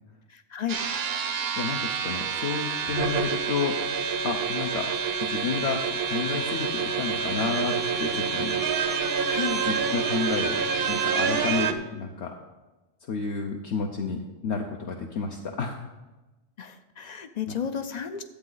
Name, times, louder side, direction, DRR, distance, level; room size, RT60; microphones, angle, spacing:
voice 1, 0.3-0.8 9.3-9.6 16.6-18.2, left 8 dB, 50° left, 9 dB, 0.6 m, -33 dB
sound 1, 0.7-11.7, right 6 dB, 60° right, 0.9 m, -27 dB
voice 2, 1.6-3.8 4.2-4.9 5.2-8.6 9.7-10.6 10.9-12.3 13.1-15.8 17.5-17.6, left 5 dB, 70° left, 2 dB, 1.1 m, -31 dB
12.0 x 8.3 x 4.0 m, 1.1 s
omnidirectional pair, 1.2 m